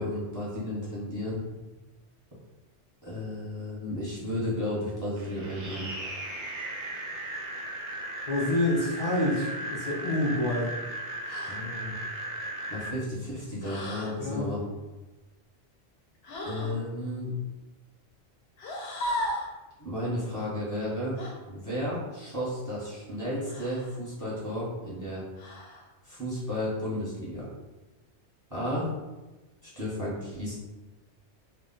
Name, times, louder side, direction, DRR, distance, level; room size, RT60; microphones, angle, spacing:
voice 1, 0.0-1.4 3.0-5.9 11.5-12.0 12.7-14.6 16.4-17.3 19.8-21.2 21.5-25.2 26.0-27.5 28.5-28.9 29.8-30.6, left 1 dB, 20° right, -6 dB, 0.7 m, -33 dB
sound 1, 5.2-12.9, right 1 dB, 60° right, 0.5 m, -36 dB
voice 2, 8.3-10.7 14.2-14.5, left 1 dB, 50° left, -6 dB, 0.4 m, -27 dB
sound 2, 11.2-11.6 13.6-14.2 16.2-16.8 18.6-19.5 21.2-21.4 23.5-24.0 25.4-25.9, left 1 dB, 65° left, 0.8 m, -35 dB
2.3 x 2.1 x 3.8 m, 1.1 s
omnidirectional pair, 1.2 m